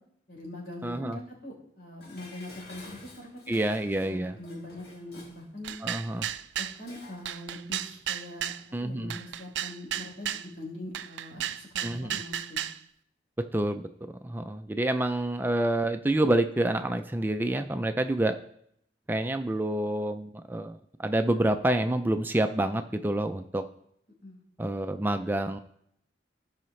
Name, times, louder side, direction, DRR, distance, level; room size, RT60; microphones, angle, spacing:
voice 1, 0.3-3.6 4.0-5.7 6.6-8.5 8.8-12.6 24.2-24.4, left 1 dB, 75° left, -2 dB, 3.8 m, -42 dB
voice 2, 0.8-1.2 3.5-4.3 5.8-6.3 8.7-9.2 11.8-12.2 13.4-13.9 14.2-18.4 19.1-23.6 24.6-25.6, right 1 dB, 10° right, 8 dB, 0.4 m, -28 dB
Dishes pots and pans, 2.0-7.3 7.6-7.7, left 2 dB, 60° left, 2.3 m, -51 dB
sound 1, 5.6-6.8 7.3-8.6 9.1-10.5 10.9-12.8, right 10 dB, 80° right, 0.4 m, -33 dB
16.5 x 5.6 x 3.2 m, 0.72 s
head